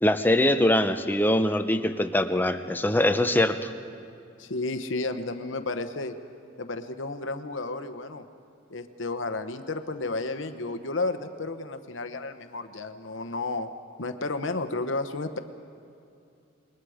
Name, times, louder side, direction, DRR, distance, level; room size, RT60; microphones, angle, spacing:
voice 1, 0.0-3.7, left 1 dB, 10° left, 8 dB, 0.7 m, -23 dB
voice 2, 4.4-6.1 6.6-8.2 8.7-13.7 14.0-15.4, left 3 dB, 70° left, 9 dB, 1.0 m, -32 dB
28.5 x 21.0 x 5.0 m, 2.5 s
head